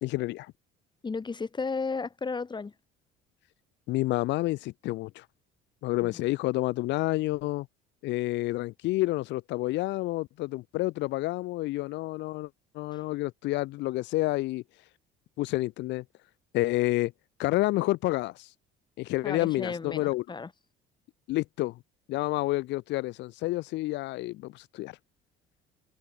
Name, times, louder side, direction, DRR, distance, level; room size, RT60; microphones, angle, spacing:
voice 1, 0.0-0.5 3.9-5.2 5.8-7.7 8.0-12.5 12.7-14.6 15.4-16.0 16.5-17.1 17.4-18.5 19.0-20.2 21.3-21.8 22.1-25.0, left 18 dB, 65° left, 0.5 m, -29 dB
voice 2, 1.0-2.7 19.2-20.5, left 4 dB, 20° left, 1.7 m, -34 dB
open air
supercardioid pair, 85°, 20 cm